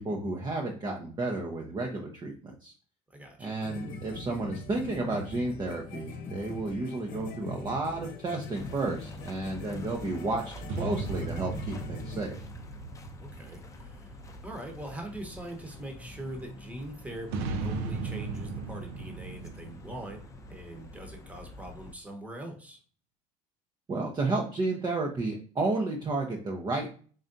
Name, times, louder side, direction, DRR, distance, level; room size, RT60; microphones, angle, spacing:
voice 1, 0.0-2.7 3.4-12.4 23.9-26.9, right 2 dB, 25° right, 0 dB, 0.7 m, -32 dB
voice 2, 3.1-3.6 13.2-14.2 14.4-20.2 20.5-22.8, right 1 dB, 10° right, 3 dB, 1.1 m, -42 dB
sound 1, 3.6-12.2, left 3 dB, 60° left, 0.9 m, -42 dB
sound 2, 8.5-21.9, equal, 20° left, 0.6 m, -47 dB
sound 3, 10.7-14.4 17.3-21.1, right 3 dB, 75° right, 0.6 m, -37 dB
3.8 x 3.2 x 2.6 m, 0.42 s
supercardioid pair, 110°, 16 cm